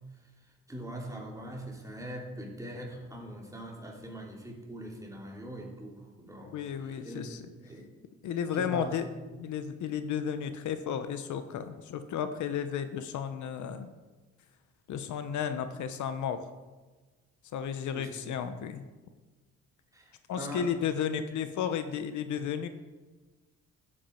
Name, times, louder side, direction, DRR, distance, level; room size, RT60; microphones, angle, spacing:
voice 1, 0.7-6.6 6.9-7.2 7.6-7.8 8.5-8.9 17.9-18.3 19.9-20.7, right 1 dB, 10° right, -1 dB, 2.7 m, -42 dB
voice 2, 6.5-7.4 8.2-9.0 9.4-13.9 14.9-16.4 17.5-18.8 20.3-22.7, left 8 dB, 75° left, 10 dB, 0.8 m, -33 dB
12.5 x 8.7 x 4.4 m, 1.3 s
cardioid pair, 90°, 30 cm